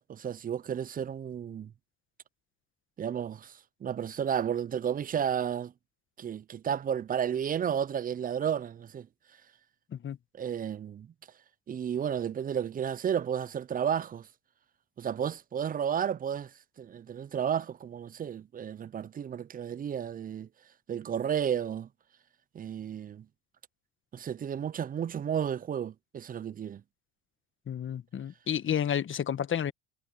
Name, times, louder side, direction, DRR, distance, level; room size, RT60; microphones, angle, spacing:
voice 1, 0.0-1.7 3.0-5.7 6.2-9.1 10.3-11.1 11.7-14.3 15.0-16.5 16.8-20.5 20.9-21.9 22.5-23.3 24.1-26.8, right 8 dB, 25° right, 0.4 m, -32 dB
voice 2, 27.7-29.7, left 9 dB, 35° left, 1.3 m, -31 dB
supercardioid pair, 95°, 35 cm